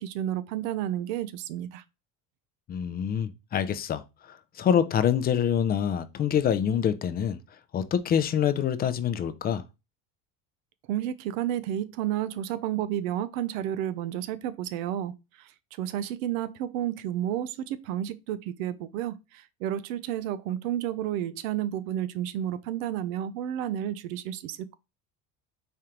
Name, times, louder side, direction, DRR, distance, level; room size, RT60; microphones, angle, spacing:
voice 1, 0.0-1.8 10.9-15.1 15.4-15.5 15.8-24.8, right 11 dB, 90° right, 0.5 m, -31 dB
voice 2, 2.7-7.4 7.7-9.6, left 8 dB, 25° left, 0.4 m, -26 dB
3.7 x 3.2 x 2.9 m
supercardioid pair, 115°, 39 cm